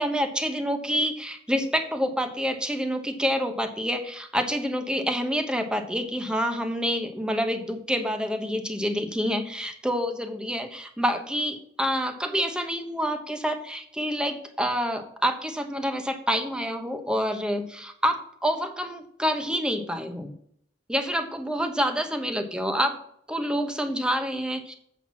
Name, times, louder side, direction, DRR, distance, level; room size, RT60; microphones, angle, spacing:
voice 1, 0.0-20.3 20.9-23.0 23.3-24.7, equal, 5° right, 7 dB, 0.9 m, -27 dB
7.8 x 5.9 x 6.1 m, 0.68 s
head